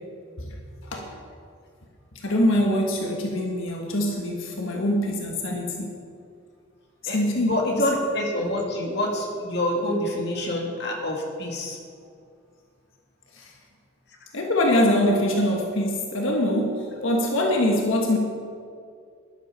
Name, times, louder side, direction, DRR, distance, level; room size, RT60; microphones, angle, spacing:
voice 1, 0.8-1.2 2.1-5.9 7.0-7.5 13.3-13.5 14.3-18.2, left 1 dB, 85° left, 0 dB, 1.6 m, -24 dB
voice 2, 7.1-11.8 17.0-17.1, left 1 dB, 55° left, 0 dB, 2.0 m, -27 dB
12.5 x 11.0 x 5.6 m, 2.3 s
head